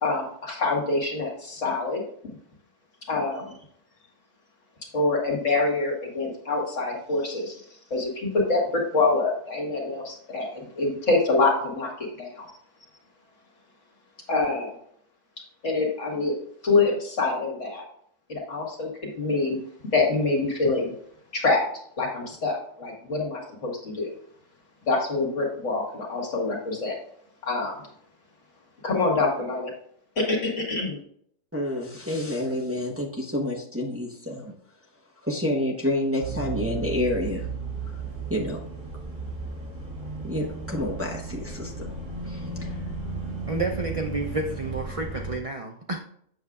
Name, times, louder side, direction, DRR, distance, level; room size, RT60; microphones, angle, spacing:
voice 1, 0.0-2.0 3.1-3.4 4.9-7.6 7.9-12.5 14.3-14.7 15.6-16.3 16.6-17.8 18.3-19.6 19.9-20.9 21.3-21.6 22.0-24.1 24.9-27.0 27.4-27.8 28.8-29.7 30.2-31.0, left 3 dB, 70° left, -1 dB, 2.1 m, -25 dB
voice 2, 31.5-34.5 35.2-37.5 38.3-38.6 40.2-41.9 42.3-42.4, left 1 dB, 10° right, -3 dB, 1.0 m, -28 dB
sound 1, 36.2-45.4, right 3 dB, 65° right, 2.3 m, -34 dB
voice 3, 43.5-46.0, right 3 dB, 50° right, 2 dB, 0.4 m, -30 dB
7.8 x 6.5 x 2.4 m, 0.66 s
omnidirectional pair, 1.4 m